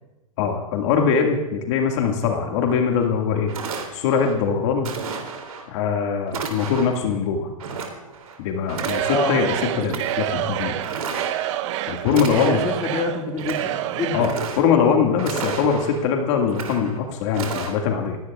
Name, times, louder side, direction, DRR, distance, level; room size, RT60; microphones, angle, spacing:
voice 1, 0.4-3.5 3.9-4.9 5.7-7.5 8.4-10.8 11.9-12.6 14.1-18.2, left 6 dB, 55° left, 2 dB, 1.9 m, -22 dB
sound 1, 3.0-3.1 3.5-4.3 4.8-5.6 6.3-7.0 7.6-8.4 8.7-9.4 9.8-10.3 10.8-11.6 12.0-12.9 13.3-13.8 14.1-14.9 15.2-16.0 16.4-17.0 17.3-17.7, right 5 dB, 75° right, 2.9 m, -32 dB
Singing / Crowd, 8.7-14.4, right 12 dB, 55° right, 0.7 m, -28 dB
voice 2, 9.1-9.4 12.5-14.4, left 4 dB, 20° left, 2 dB, 2.0 m, -27 dB
29.5 x 16.5 x 2.4 m, 1.0 s
hypercardioid pair, 105°, 19 cm